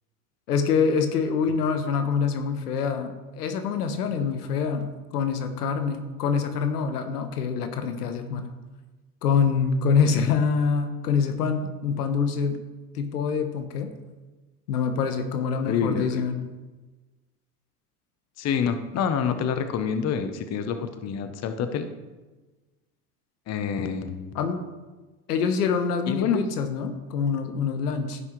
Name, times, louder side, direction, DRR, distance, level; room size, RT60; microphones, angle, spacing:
voice 1, 0.5-8.5 9.2-12.6 12.9-13.9 14.7-16.5 20.8-20.9 24.3-24.7 25.3-28.2, left 6 dB, 85° left, 8 dB, 1.1 m, -25 dB
voice 2, 15.6-16.3 18.4-21.9 23.5-24.3 26.1-26.4, left 7 dB, 35° left, 9 dB, 0.8 m, -27 dB
15.0 x 5.6 x 3.1 m, 1.2 s
hypercardioid pair, 90°, 46 cm